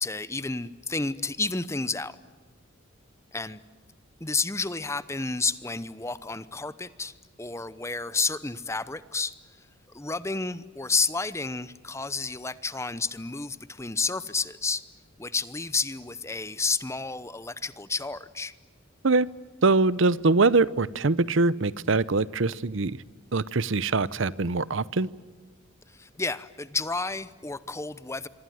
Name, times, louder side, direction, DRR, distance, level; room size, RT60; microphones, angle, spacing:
voice 1, 0.0-2.2 3.3-3.6 4.2-9.3 9.9-14.8 15.2-18.5 25.9-28.3, left 4 dB, 15° left, 15 dB, 0.8 m, -31 dB
voice 2, 19.6-23.0 23.3-25.1, right 3 dB, 65° right, 19 dB, 0.8 m, -23 dB
26.0 x 24.5 x 9.3 m, 1.4 s
head